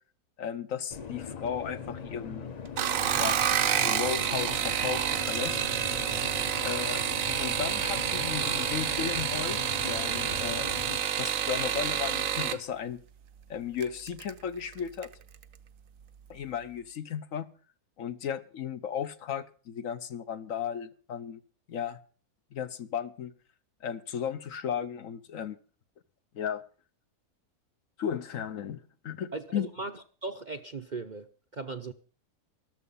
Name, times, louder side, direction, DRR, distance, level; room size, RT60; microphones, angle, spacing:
voice 1, 0.4-2.5 3.2-3.4 3.8-5.6 6.6-7.0 7.4-9.6 9.9-10.7 11.2-13.0 13.5-15.1 16.3-17.5 18.0-21.4 21.7-22.0 22.5-23.3 23.8-25.6 26.3-26.6 28.0-29.7, left 8 dB, 65° left, 1.2 m, -35 dB
sound 1, 0.9-11.0, left 6 dB, 35° left, 0.8 m, -40 dB
sound 2, 2.7-12.6 13.8-14.3 14.7-15.1 15.4-15.5, right 9 dB, 65° right, 1.2 m, -29 dB
voice 2, 29.3-31.3 31.5-31.9, right 3 dB, 40° right, 0.7 m, -38 dB
14.0 x 12.5 x 5.5 m
omnidirectional pair, 1.6 m